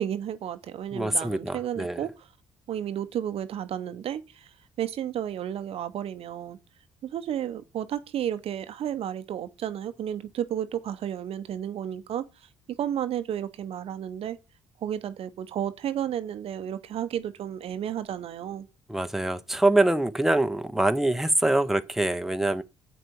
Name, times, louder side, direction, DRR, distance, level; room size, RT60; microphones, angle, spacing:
voice 1, 0.0-2.3 2.7-4.5 4.8-6.6 7.0-12.2 12.8-14.4 14.8-18.7, right 10 dB, 55° right, 0.9 m, -32 dB
voice 2, 0.9-2.0 18.9-22.6, right 2 dB, 5° right, 1.0 m, -24 dB
8.0 x 6.1 x 4.7 m
hypercardioid pair, 50°, 12 cm